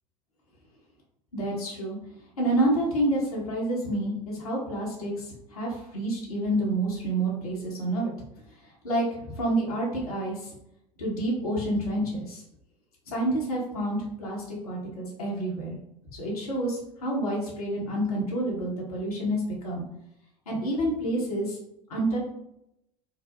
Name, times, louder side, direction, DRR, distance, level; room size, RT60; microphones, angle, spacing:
voice 1, 1.3-2.0 2.4-8.1 8.8-9.1 9.4-10.5 11.0-12.4 13.1-15.8 16.1-19.8 20.5-21.6 21.9-22.2, right 1 dB, 75° left, -5 dB, 1.1 m, -28 dB
4.4 x 2.0 x 2.6 m, 0.80 s
figure-of-eight pair, 75°, 19 cm